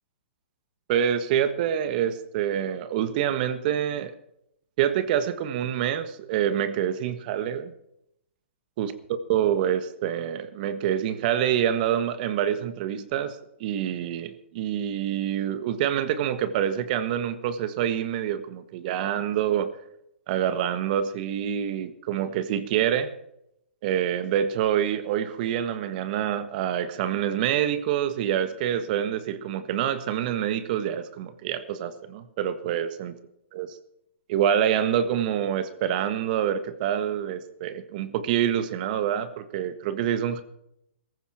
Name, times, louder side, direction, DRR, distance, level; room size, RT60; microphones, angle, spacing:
voice 1, 0.9-4.1 4.8-7.7 8.8-8.9 9.3-19.7 20.3-23.1 23.8-33.1 33.5-33.8 34.3-40.4, right 10 dB, 45° right, 11 dB, 1.5 m, -26 dB
17.5 x 15.0 x 4.4 m, 0.77 s
hypercardioid pair, 130°, 6 cm